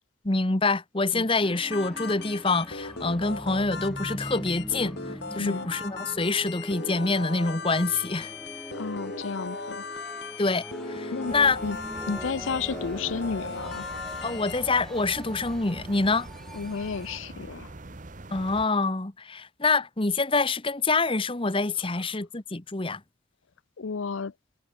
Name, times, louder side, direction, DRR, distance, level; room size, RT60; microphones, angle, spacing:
voice 1, 0.2-5.0 5.3-8.3 10.4-11.6 14.2-16.3 18.3-23.0, left 3 dB, 25° left, 1.2 m, -26 dB
sound 1, 1.4-17.2, equal, ahead, 3.8 m, -42 dB
sound 2, 1.7-14.6, left 4 dB, 55° left, 3.2 m, -38 dB
voice 2, 5.4-5.7 8.7-9.8 11.1-11.3 11.6-11.8 12.1-13.9 16.5-17.7 23.8-24.3, left 5 dB, 80° left, 0.6 m, -32 dB
sound 3, 11.3-18.6, right 2 dB, 40° right, 1.1 m, -43 dB
head